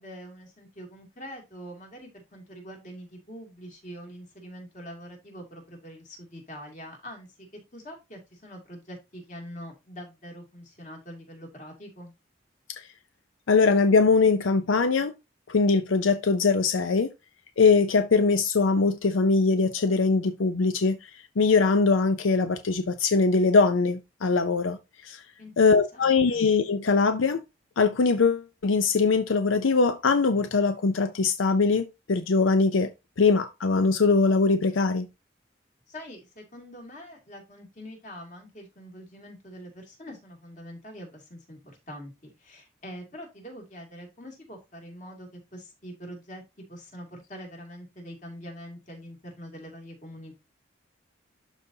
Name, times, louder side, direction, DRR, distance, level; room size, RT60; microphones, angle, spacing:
voice 1, 0.0-7.5 7.7-12.1 25.4-26.4 35.9-46.4 46.7-50.4, equal, 40° left, 2.6 m, -44 dB
voice 2, 13.5-15.1 15.5-17.1 17.6-21.0 21.4-24.8 25.0-25.2 25.6-27.4 27.8-32.9 33.2-35.1, left 4 dB, 90° left, 0.6 m, -22 dB
12.0 x 4.1 x 2.7 m
head